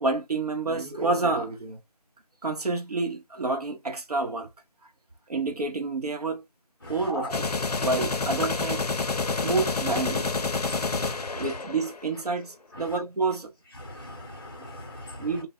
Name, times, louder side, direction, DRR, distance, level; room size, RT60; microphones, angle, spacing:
voice 1, 0.0-1.8 2.4-4.5 5.3-6.4 6.9-7.5 7.8-8.8 9.4-10.3 11.3-13.5 15.2-15.5, right 3 dB, 70° right, 0.8 m, -28 dB
voice 2, 6.8-7.3 9.1-9.5 10.6-11.4 13.8-15.2, left 1 dB, 35° left, 0.6 m, -39 dB
sound 1, 7.3-12.2, left 4 dB, 75° left, 0.5 m, -28 dB
2.1 x 2.0 x 3.4 m
figure-of-eight pair, 170°, 20 cm